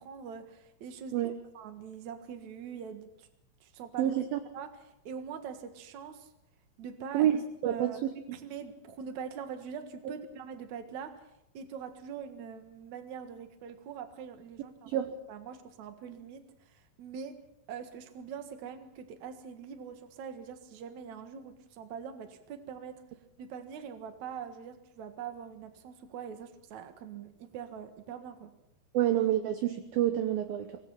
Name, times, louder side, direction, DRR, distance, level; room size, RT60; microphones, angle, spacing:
voice 1, 0.0-1.3 1.5-3.3 3.6-4.2 4.5-6.3 6.8-7.4 7.6-8.0 8.3-11.2 11.5-15.0 15.3-17.4 17.7-23.0 23.4-28.5, right 7 dB, 55° right, 8 dB, 2.3 m, -43 dB
voice 2, 4.0-4.4 7.1-8.1 10.1-10.2 14.9-15.1 28.9-30.8, right 11 dB, 70° right, 8 dB, 2.4 m, -28 dB
25.0 x 19.0 x 5.8 m, 0.81 s
omnidirectional pair, 5.2 m